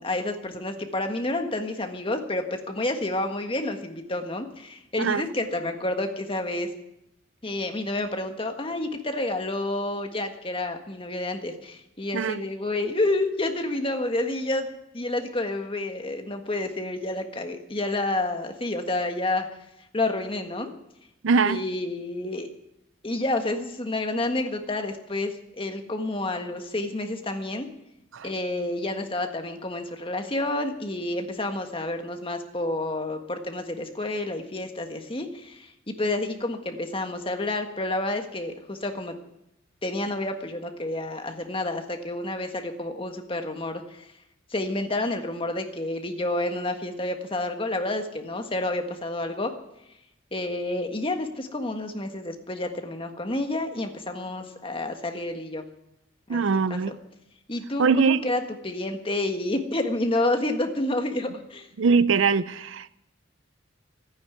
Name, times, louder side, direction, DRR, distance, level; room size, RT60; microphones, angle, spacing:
voice 1, 0.0-6.7 7.4-19.5 19.9-20.7 21.4-22.5 23.0-27.7 28.2-39.1 39.8-44.1 44.5-49.5 50.3-55.6 56.3-56.4 56.7-56.9 57.5-61.7, left 2 dB, 25° left, 1.5 m, -29 dB
voice 2, 21.2-21.6 28.1-28.3 56.3-57.0 57.8-58.2 61.8-63.0, right 5 dB, 75° right, 0.5 m, -22 dB
14.0 x 9.7 x 9.4 m
head